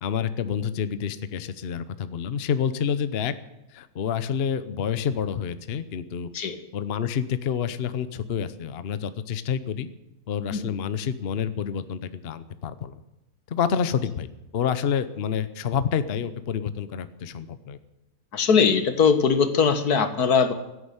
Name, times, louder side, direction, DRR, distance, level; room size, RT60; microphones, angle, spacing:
voice 1, 0.0-3.3 3.7-6.3 6.7-9.9 10.3-13.0 13.5-14.3 14.5-17.8, left 7 dB, 50° left, 13 dB, 0.9 m, -28 dB
voice 2, 18.3-20.5, left 6 dB, 80° left, 9 dB, 1.9 m, -20 dB
16.0 x 9.8 x 8.1 m, 0.95 s
omnidirectional pair, 1.6 m